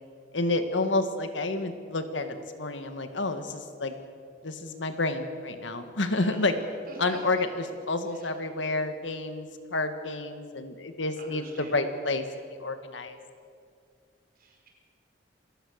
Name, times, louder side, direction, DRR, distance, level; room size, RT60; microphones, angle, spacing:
voice 1, 0.3-3.9 4.4-6.5 7.0-13.2, left 2 dB, 90° left, 8 dB, 1.8 m, -30 dB
voice 2, 6.1-6.5 6.9-7.2 8.1-8.3 11.2-12.1 14.4-14.7, right 2 dB, 50° right, 0 dB, 4.9 m, -48 dB
27.0 x 16.0 x 6.5 m, 2.3 s
head